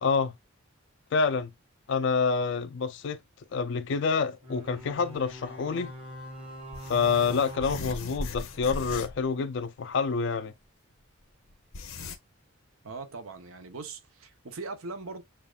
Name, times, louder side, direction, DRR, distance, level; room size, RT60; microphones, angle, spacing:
voice 1, 0.0-0.3 1.1-1.5 1.9-3.2 3.5-5.9 6.9-10.5, left 5 dB, 55° left, 0.4 m, -27 dB
sound 1, 4.4-8.9, equal, 25° right, 1.1 m, -43 dB
sound 2, 5.2-5.3 6.7-9.3 9.6-9.7 10.9-11.0 11.5-12.2, left 3 dB, 80° left, 0.8 m, -38 dB
voice 2, 12.8-15.2, right 3 dB, 75° right, 0.8 m, -40 dB
6.8 x 2.4 x 2.4 m
head